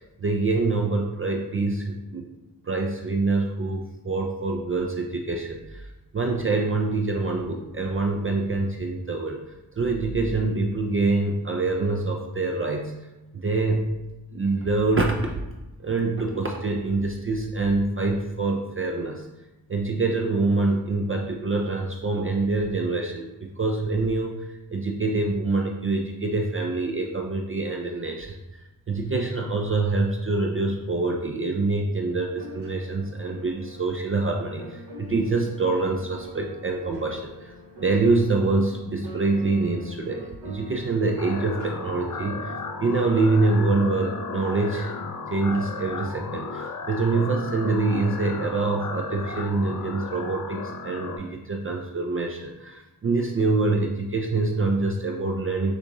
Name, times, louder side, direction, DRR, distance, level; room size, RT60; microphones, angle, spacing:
voice 1, 0.2-2.3 2.6-9.4 9.8-12.9 13.3-14.0 14.3-15.3 15.8-19.3 19.7-37.5 37.8-44.9 45.3-55.8, right 3 dB, 30° right, 1 dB, 0.4 m, -25 dB
sound 1, 32.3-42.8, right 1 dB, 75° right, 0.9 m, -44 dB
sound 2, 41.2-51.2, left 4 dB, 45° left, 0.6 m, -35 dB
6.5 x 2.3 x 2.9 m, 1.0 s
cardioid pair, 65°, 41 cm